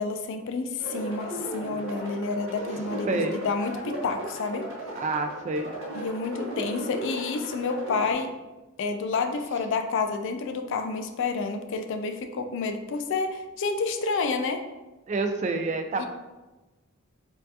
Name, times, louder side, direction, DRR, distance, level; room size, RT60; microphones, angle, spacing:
voice 1, 0.0-4.6 5.9-8.3 8.8-14.6 16.0-16.1, left 4 dB, 60° left, 6 dB, 0.3 m, -29 dB
sound 1, 0.8-8.1, right 1 dB, 65° right, 0.9 m, -36 dB
voice 2, 3.1-3.4 4.9-5.7 15.1-16.1, right 3 dB, 35° right, 6 dB, 0.3 m, -28 dB
4.4 x 2.4 x 2.7 m, 1.1 s
head